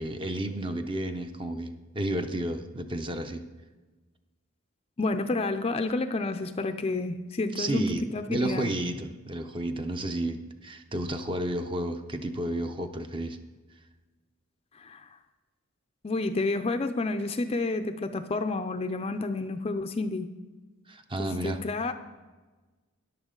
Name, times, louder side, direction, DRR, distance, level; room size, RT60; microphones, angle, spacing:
voice 1, 0.0-3.4 7.6-13.4 20.9-21.6, right 1 dB, 25° right, 7 dB, 0.7 m, -32 dB
voice 2, 5.0-8.7 14.8-15.1 16.0-20.3 21.2-21.9, left 2 dB, 30° left, 9 dB, 0.4 m, -30 dB
13.5 x 10.5 x 3.8 m, 1.3 s
head